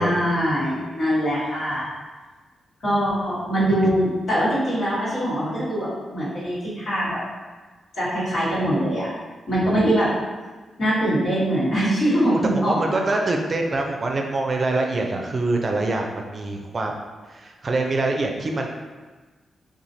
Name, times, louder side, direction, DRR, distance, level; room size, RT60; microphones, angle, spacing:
voice 1, 0.0-1.9 2.8-7.2 7.9-9.1 9.5-10.1 10.8-13.1, equal, 70° left, -12 dB, 1.4 m, -22 dB
voice 2, 12.6-16.9 17.3-18.7, right 2 dB, 45° right, 2 dB, 0.4 m, -25 dB
3.1 x 2.3 x 2.7 m, 1.3 s
supercardioid pair, 45°, 0 cm